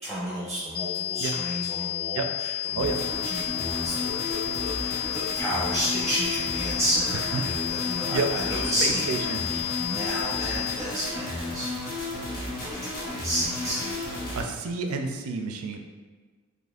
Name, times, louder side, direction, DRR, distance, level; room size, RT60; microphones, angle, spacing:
voice 1, 0.0-11.7 12.6-13.9, equal, ahead, -9 dB, 0.7 m, -32 dB
sound 1, 0.7-10.7, left 15 dB, 25° left, 0.3 m, -31 dB
sound 2, 2.8-14.4, left 2 dB, 45° left, 0.9 m, -33 dB
voice 2, 8.8-9.4 14.3-15.8, right 4 dB, 70° right, 5 dB, 0.4 m, -29 dB
4.1 x 3.1 x 2.4 m, 1.4 s
head